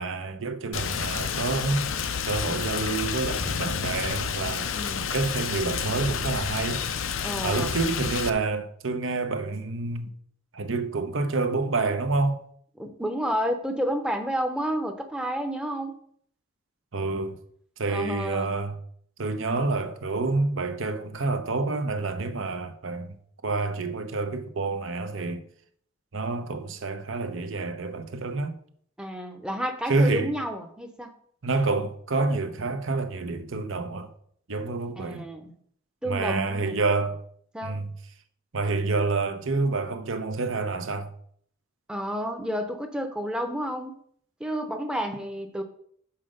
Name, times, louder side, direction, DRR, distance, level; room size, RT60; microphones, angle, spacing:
voice 1, 0.0-1.9 2.2-6.8 7.4-10.1 10.5-12.4 16.9-17.4 17.8-18.7 19.2-23.2 23.4-25.4 26.1-28.6 29.9-30.3 31.4-34.1 34.5-35.3 36.1-37.2 37.6-37.9 38.5-41.1, right 3 dB, 70° right, 0.8 m, -28 dB
Rain, 0.7-8.3, left 7 dB, 75° left, 0.6 m, -30 dB
voice 2, 4.7-5.1 7.2-7.7 12.8-16.0 17.9-18.5 29.0-31.1 35.0-35.5 36.0-36.8 37.5-37.8 41.9-44.0 44.4-45.6, equal, 5° right, 0.7 m, -30 dB
5.7 x 4.9 x 6.5 m
head